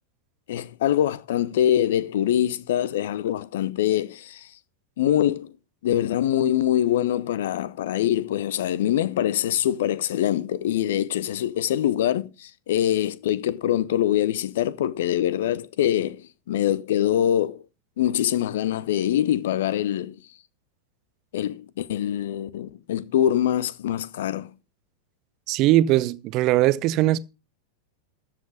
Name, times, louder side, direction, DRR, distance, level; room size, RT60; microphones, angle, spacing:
voice 1, 0.5-4.5 5.0-5.5 5.8-17.6 18.0-20.2 21.3-24.5, left 11 dB, 55° left, 0.8 m, -24 dB
voice 2, 25.5-27.2, right 15 dB, 40° right, 0.7 m, -20 dB
13.5 x 7.6 x 5.0 m
figure-of-eight pair, 90°, 0 cm